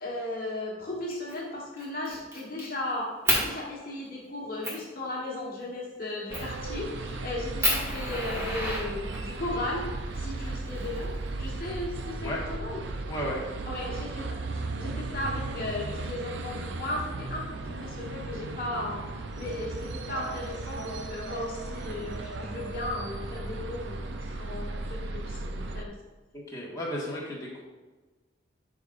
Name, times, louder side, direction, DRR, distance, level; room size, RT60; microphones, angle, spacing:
voice 1, 0.0-9.9 10.1-12.8 13.7-19.0 19.4-25.9, left 1 dB, 45° left, -4 dB, 1.4 m, -36 dB
Fire, 1.1-1.4 1.8-2.7 3.3-3.5 4.1-4.2 4.6-4.8 6.3-6.6 7.1-7.2 7.6-9.4 10.4-11.4, equal, 15° right, 1.8 m, -29 dB
sound 1, 6.3-25.8, right 2 dB, 65° right, 0.6 m, -36 dB
voice 2, 13.1-13.4 26.3-27.6, equal, 15° left, -6 dB, 1.7 m, -34 dB
12.0 x 4.9 x 2.6 m, 1.2 s
head